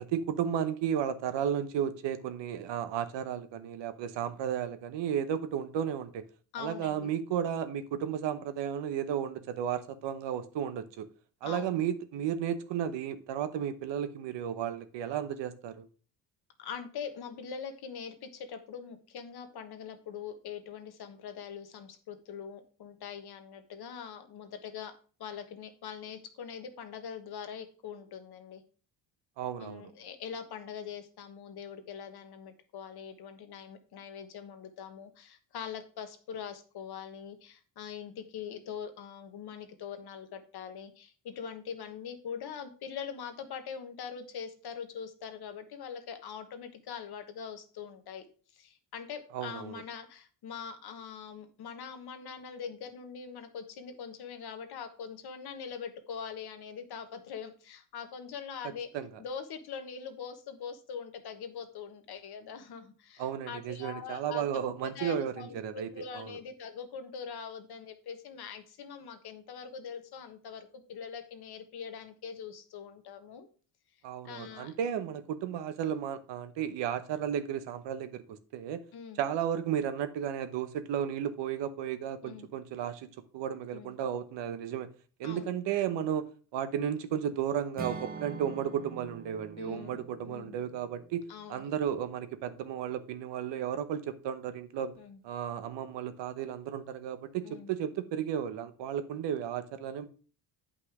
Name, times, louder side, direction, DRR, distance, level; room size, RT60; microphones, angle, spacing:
voice 1, 0.0-6.3 6.6-11.1 11.4-15.9 29.4-29.9 49.3-49.8 58.6-59.2 63.2-66.3 74.0-78.8 79.2-83.1 83.3-84.9 85.2-94.9 95.2-100.1, right 9 dB, 75° right, 1.1 m, -34 dB
voice 2, 6.5-7.1 11.4-11.8 16.6-24.9 25.2-28.6 29.6-48.2 48.5-58.9 59.2-73.5 74.2-74.7 78.9-79.2 82.2-82.5 83.7-83.9 85.2-85.5 89.6-90.6 91.3-91.7 95.0-95.2 97.4-97.7, left 7 dB, 60° left, 1.5 m, -43 dB
Acoustic guitar / Strum, 87.8-91.9, right 5 dB, 20° right, 0.9 m, -45 dB
8.5 x 5.5 x 4.8 m
cardioid pair, 115°, 44 cm